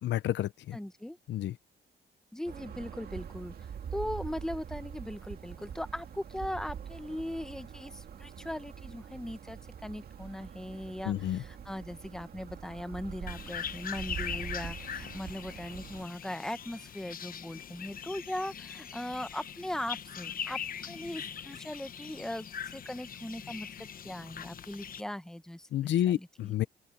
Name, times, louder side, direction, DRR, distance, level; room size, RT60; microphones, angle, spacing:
voice 1, 0.0-0.8 1.3-1.5 11.0-11.4 25.7-26.6, left 12 dB, 85° left, 0.7 m, -30 dB
voice 2, 0.7-1.2 2.3-20.6 20.9-26.5, left 1 dB, 5° left, 0.9 m, -39 dB
sound 1, 2.4-16.1, right 8 dB, 55° right, 2.0 m, -44 dB
sound 2, 13.3-25.0, left 8 dB, 50° left, 1.0 m, -41 dB
open air
cardioid pair, 125°, 18 cm